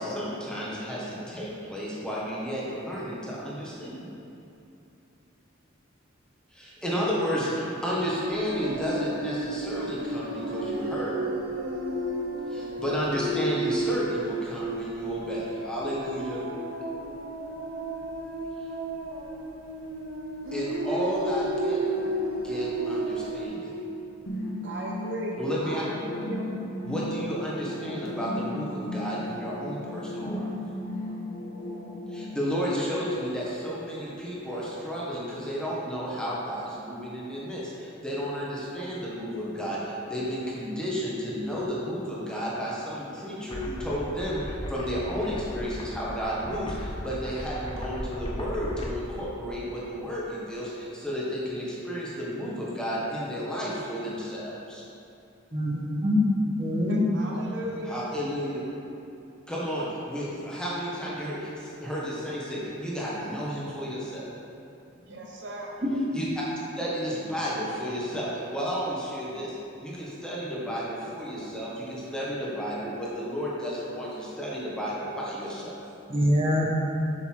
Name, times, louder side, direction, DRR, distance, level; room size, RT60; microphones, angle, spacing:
voice 1, 0.0-4.1 6.5-11.2 12.5-16.4 20.5-22.1 22.4-23.7 25.4-25.8 26.8-30.5 32.1-54.8 57.8-58.6 59.5-64.2 66.1-66.4 66.8-75.8, equal, 5° left, -7 dB, 1.6 m, -32 dB
sound 1, 8.2-23.5, right 1 dB, 85° right, 1.0 m, -32 dB
sound 2, 24.3-32.2, left 1 dB, 80° left, 1.4 m, -35 dB
voice 2, 24.6-25.3 25.6-26.5 26.7-26.9 56.9-58.0 65.1-65.7, right 1 dB, 60° right, -2 dB, 1.0 m, -37 dB
sound 3, 43.5-48.9, equal, 25° left, 0.7 m, -37 dB
voice 3, 55.5-56.2 56.6-57.0 65.1-65.2 65.8-65.9 76.1-76.7, left 1 dB, 30° right, -3 dB, 1.3 m, -24 dB
7.3 x 6.9 x 4.8 m, 2.7 s
head